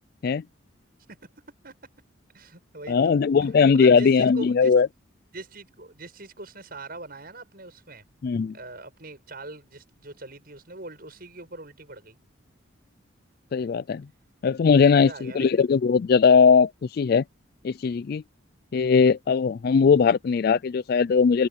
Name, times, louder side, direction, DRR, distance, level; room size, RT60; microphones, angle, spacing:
voice 1, 2.3-4.7 5.3-8.0 8.5-12.2 15.0-15.5, right 2 dB, 50° right, 7.9 m, -42 dB
voice 2, 2.9-4.9 8.2-8.5 13.5-14.1 14.4-17.2 17.6-18.2 18.7-21.5, left 5 dB, 50° left, 0.3 m, -19 dB
head